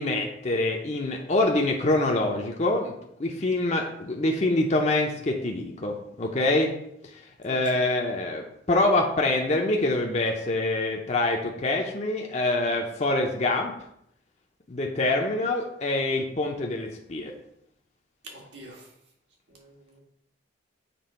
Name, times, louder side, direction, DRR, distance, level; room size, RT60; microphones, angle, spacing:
voice 1, 0.0-2.9 3.2-6.7 7.1-13.7 14.7-17.3, left 2 dB, 40° left, 1 dB, 0.7 m, -25 dB
voice 2, 7.5-7.9 18.2-18.9 19.5-20.0, right 1 dB, 75° right, -2 dB, 2.0 m, -46 dB
6.9 x 3.4 x 5.6 m, 0.76 s
head